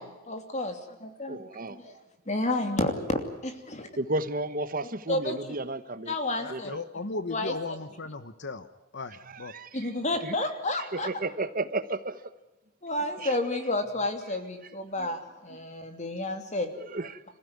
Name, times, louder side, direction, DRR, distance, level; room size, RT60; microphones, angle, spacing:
voice 1, 0.0-1.4 1.7-2.0 2.3-3.9 5.1-5.4 6.1-6.7 7.3-7.5 9.7-11.1 12.8-16.7, left 2 dB, 35° left, 7 dB, 2.8 m, -31 dB
voice 2, 1.3-1.9 4.0-6.1 6.5-6.6 9.3-9.9 10.2-10.3 10.9-12.2 13.2-13.3 15.0-15.1 16.8-17.2, right 2 dB, 40° right, 12 dB, 1.1 m, -33 dB
voice 3, 6.4-8.7 8.9-9.5, left 3 dB, 55° left, 12 dB, 1.0 m, -36 dB
27.0 x 15.5 x 9.6 m, 1.1 s
head